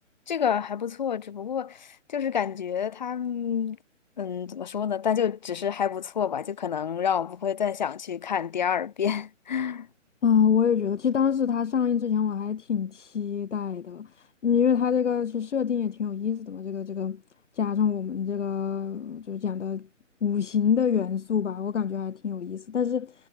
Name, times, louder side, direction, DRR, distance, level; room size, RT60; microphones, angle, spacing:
voice 1, 0.3-3.8 4.2-9.9, left 8 dB, 35° left, 0.8 m, -28 dB
voice 2, 10.2-17.2 17.6-19.9 20.2-23.1, left 7 dB, 65° left, 1.2 m, -26 dB
hypercardioid pair, 165°, 39 cm